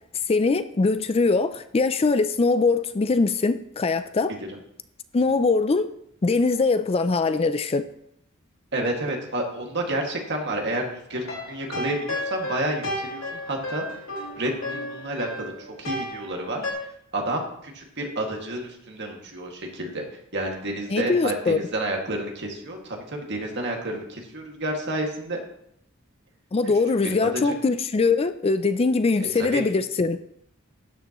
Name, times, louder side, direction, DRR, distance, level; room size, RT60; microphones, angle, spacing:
voice 1, 0.3-4.3 5.1-5.9 6.2-7.9 20.9-21.6 26.5-30.2, left 3 dB, 30° left, 0.4 m, -22 dB
voice 2, 4.3-4.6 8.7-13.8 14.4-25.4 26.6-27.5 29.2-29.6, right 1 dB, 55° right, 2.1 m, -30 dB
sound 1, 11.1-16.7, left 1 dB, 70° left, 2.9 m, -33 dB
12.5 x 9.2 x 3.1 m
head